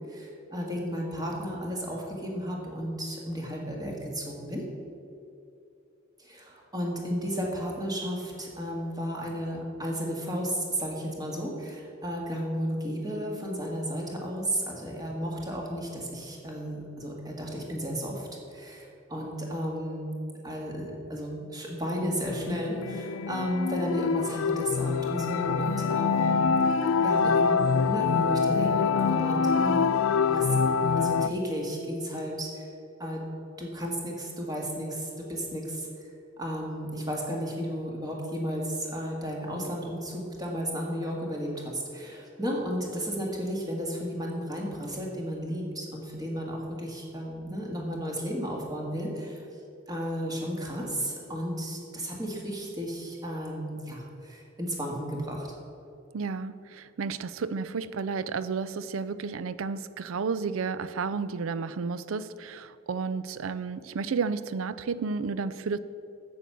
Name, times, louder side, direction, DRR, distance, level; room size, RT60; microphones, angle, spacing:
voice 1, 0.1-4.6 6.2-20.1 20.4-26.4 26.7-30.5 31.0-32.7 33.0-33.2 33.6-49.4 49.9-55.5, equal, 20° right, -1 dB, 1.8 m, -33 dB
sound 1, 22.3-31.3, left 5 dB, 75° left, 0.4 m, -25 dB
voice 2, 56.1-65.8, right 5 dB, 85° right, 15 dB, 0.4 m, -32 dB
8.5 x 7.7 x 6.8 m, 2.6 s
head